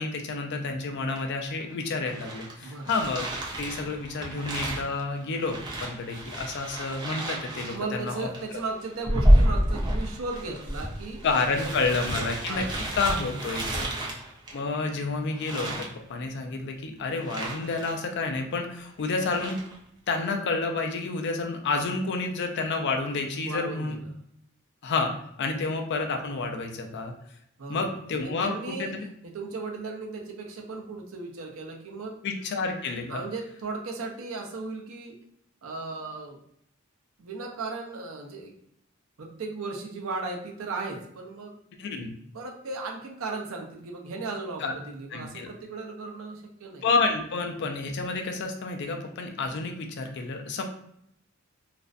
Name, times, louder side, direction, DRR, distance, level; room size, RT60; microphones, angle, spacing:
voice 1, 0.0-3.3 3.6-8.6 11.2-12.6 12.9-13.9 14.5-19.6 20.1-24.0 24.8-25.1 25.4-27.1 27.7-29.1 32.2-33.2 41.8-42.1 44.6-44.7 45.1-45.5 46.8-50.6, left 3 dB, 55° left, 4 dB, 0.4 m, -29 dB
sound 1, 1.2-1.3 1.6-14.9 15.3-15.9 17.2-18.0 18.3-18.4 19.0-19.8, equal, 20° right, 0.5 m, -29 dB
voice 2, 2.6-2.9 7.5-12.9 13.7-14.2 23.4-24.2 27.6-27.9 28.1-28.9 29.2-32.2 33.1-35.2 35.6-36.4 37.2-38.5 39.2-41.6 42.3-46.9, right 3 dB, 80° right, 0 dB, 0.6 m, -36 dB
2.4 x 2.1 x 2.4 m, 0.72 s
head